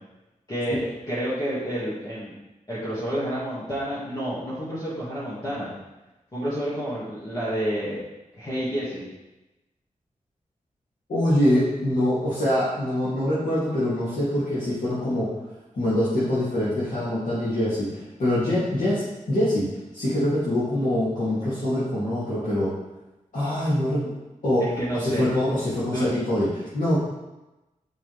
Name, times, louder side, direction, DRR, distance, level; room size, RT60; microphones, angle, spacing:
voice 1, 0.5-2.3 2.7-5.7 6.3-8.0 8.3-9.0 24.6-25.2 25.8-26.1, equal, 30° left, -10 dB, 1.8 m, -29 dB
voice 2, 11.1-15.3 15.7-19.7 19.9-22.7 23.3-24.0 24.4-24.7 24.9-27.0, left 1 dB, 75° left, -11 dB, 2.3 m, -24 dB
7.5 x 5.5 x 3.2 m, 1.0 s
wide cardioid pair, 120°, 14 cm